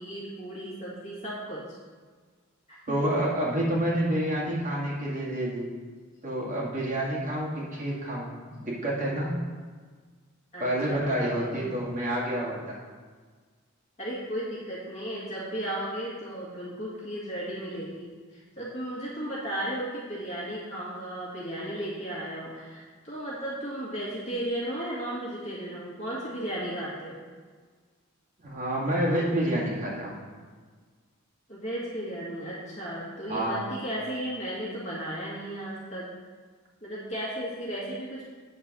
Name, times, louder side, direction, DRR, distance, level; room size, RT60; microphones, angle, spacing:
voice 1, 0.0-1.7 2.7-3.0 10.5-11.5 14.0-27.2 31.5-36.2 36.8-38.3, right 1 dB, 30° left, -8 dB, 1.9 m, -35 dB
voice 2, 2.9-5.7 6.2-9.4 10.6-12.8 28.4-30.2 33.3-33.6, right 1 dB, 35° right, -6 dB, 2.1 m, -28 dB
8.9 x 4.6 x 6.1 m, 1.5 s
head